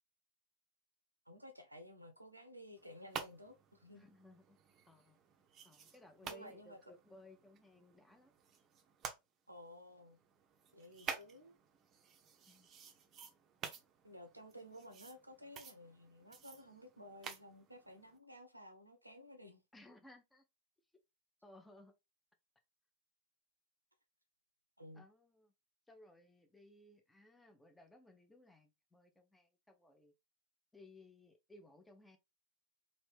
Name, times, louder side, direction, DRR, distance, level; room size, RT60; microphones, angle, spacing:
voice 1, 1.3-4.1 6.2-6.8 9.5-10.2 10.7-11.6 14.0-19.6 24.8-25.0, equal, 85° right, 0.6 m, -54 dB
sound 1, 2.8-9.1 9.7-18.2, right 7 dB, 30° right, 0.6 m, -51 dB
voice 2, 3.9-4.6 4.9-5.2 5.6-8.3 12.5-12.7 19.7-20.4 21.4-21.9 24.9-25.5 25.9-30.1 30.7-32.2, left 1 dB, 5° left, 0.7 m, -61 dB
3.1 x 2.6 x 3.2 m
figure-of-eight pair, 90°, 0 cm